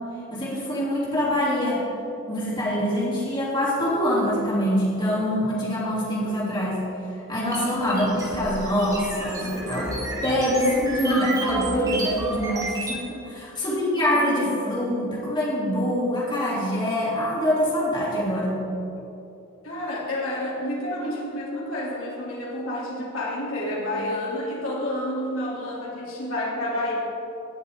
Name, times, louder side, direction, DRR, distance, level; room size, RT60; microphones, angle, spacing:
voice 1, 0.3-1.8 2.3-6.9 7.3-18.6, equal, 20° left, -7 dB, 3.1 m, -24 dB
sound 1, 7.5-13.0, right 2 dB, 15° right, 1.8 m, -31 dB
voice 2, 19.6-26.9, left 1 dB, 75° left, -6 dB, 3.0 m, -29 dB
18.0 x 7.7 x 3.7 m, 2.8 s
head